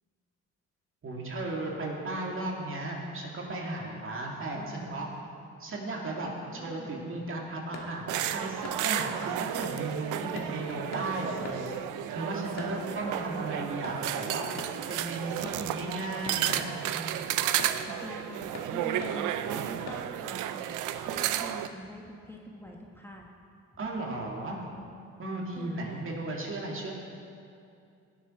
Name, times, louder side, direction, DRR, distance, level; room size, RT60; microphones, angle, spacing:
voice 1, 1.0-5.1 5.6-11.7 12.1-14.5 14.9-17.3 23.8-24.7 25.2-26.9, right 2 dB, 45° right, -1 dB, 2.4 m, -35 dB
voice 2, 4.5-5.2 6.4-7.1 10.2-11.0 13.0-13.5 17.9-23.3 25.5-26.1, equal, 10° left, -1 dB, 1.2 m, -45 dB
sound 1, 7.3-20.4, left 2 dB, 60° left, 1.6 m, -47 dB
sound 2, 8.1-21.7, right 11 dB, 90° right, 0.5 m, -33 dB
17.0 x 7.3 x 4.4 m, 2.4 s
cardioid pair, 90°, 30 cm